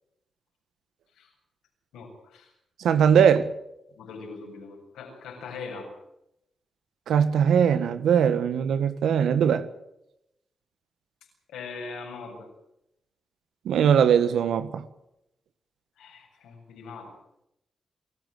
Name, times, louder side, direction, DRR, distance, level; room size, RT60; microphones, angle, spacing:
voice 1, 1.9-2.5 3.2-3.3 3.9-5.9 11.5-12.5 16.0-17.1, left 4 dB, 85° left, 7.4 m, -41 dB
voice 2, 2.8-3.5 7.1-9.7 13.6-14.8, right 8 dB, 80° right, 1.6 m, -20 dB
29.0 x 14.5 x 8.0 m
hypercardioid pair, 40°, 0 cm